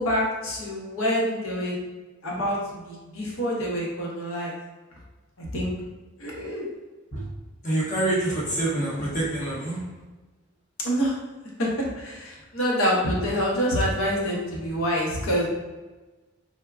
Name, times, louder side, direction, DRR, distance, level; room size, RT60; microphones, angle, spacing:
voice 1, 0.0-1.7 2.2-4.6 5.4-5.7 6.2-6.7 10.8-11.1 11.6-15.5, equal, 80° left, -3 dB, 0.8 m, -26 dB
voice 2, 7.6-9.8, right 1 dB, 35° left, -5 dB, 0.7 m, -26 dB
3.4 x 2.1 x 2.3 m, 1.2 s
head